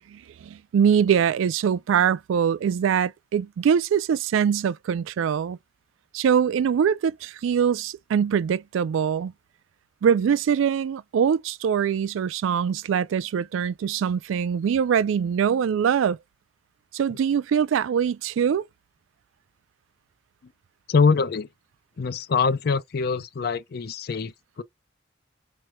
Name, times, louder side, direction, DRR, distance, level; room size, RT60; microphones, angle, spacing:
voice 1, 0.1-5.6 6.1-9.3 10.0-16.2 16.9-18.7, right 7 dB, 80° right, 0.3 m, -23 dB
voice 2, 20.9-21.5 22.0-24.6, left 5 dB, 50° left, 0.4 m, -24 dB
4.3 x 3.1 x 2.2 m
head